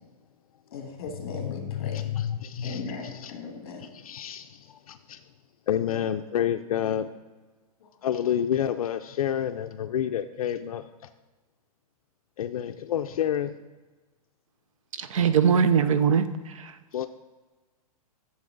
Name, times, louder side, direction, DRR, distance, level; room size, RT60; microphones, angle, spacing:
voice 1, 0.7-2.1 2.6-3.9 7.8-7.9, left 4 dB, 40° left, 2 dB, 2.1 m, -38 dB
voice 2, 1.8-3.3 3.9-5.2 5.7-7.1 8.0-11.1 12.4-13.6 16.9-17.1, left 10 dB, 70° left, 8 dB, 0.5 m, -29 dB
voice 3, 15.0-16.7, right 7 dB, 60° right, 12 dB, 0.6 m, -22 dB
11.0 x 7.4 x 3.9 m, 1.3 s
hypercardioid pair, 175°, 19 cm